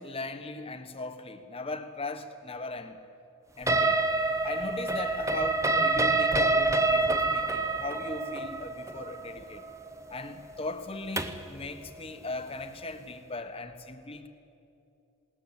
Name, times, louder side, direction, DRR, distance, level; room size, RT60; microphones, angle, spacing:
voice 1, 0.0-3.0 3.6-4.0 4.4-9.6 10.1-14.3, left 2 dB, 25° left, 1.2 m, -38 dB
sound 1, 3.7-11.5, right 2 dB, 15° right, 0.8 m, -27 dB
20.5 x 18.5 x 8.2 m
head